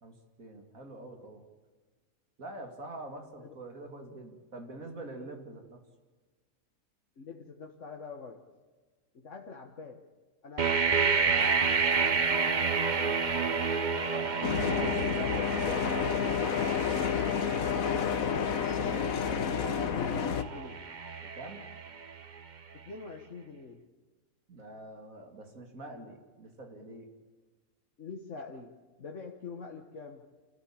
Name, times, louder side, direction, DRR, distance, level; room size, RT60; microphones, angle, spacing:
voice 1, 0.0-1.4 2.4-5.8 14.0-15.1 18.1-20.2 21.2-21.6 24.5-27.1, right 2 dB, 70° right, 4 dB, 3.0 m, -46 dB
voice 2, 7.2-8.4 9.1-10.0 10.4-13.7 15.0-17.3 19.7-20.8 22.7-23.8 28.0-28.7 29.0-30.2, left 4 dB, 60° left, 1 dB, 1.8 m, -44 dB
sound 1, 10.6-22.4, right 5 dB, 35° right, 1.0 m, -30 dB
sound 2, 11.4-15.6, left 6 dB, 35° left, 3.5 m, -44 dB
sound 3, 14.4-20.4, left 7 dB, 75° left, 1.4 m, -30 dB
28.0 x 14.5 x 8.8 m, 1.4 s
omnidirectional pair, 1.5 m